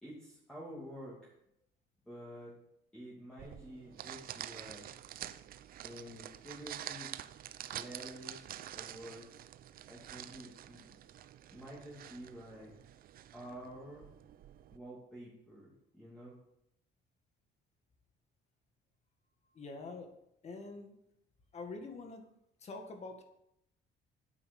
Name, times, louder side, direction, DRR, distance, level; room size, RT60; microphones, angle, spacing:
voice 1, 0.0-1.3 2.1-2.6 2.9-4.9 5.8-7.2 7.7-9.3 9.9-11.0 11.5-12.7 13.3-14.1 14.7-16.4, equal, 5° left, -7 dB, 2.7 m, -49 dB
sound 1, 3.4-14.8, right 11 dB, 50° right, 0.5 m, -48 dB
voice 2, 19.5-20.1 20.4-21.0 21.5-22.2 22.6-23.2, left 3 dB, 35° left, 5 dB, 1.8 m, -45 dB
10.0 x 8.7 x 5.4 m, 0.79 s
cardioid pair, 155°, 20 cm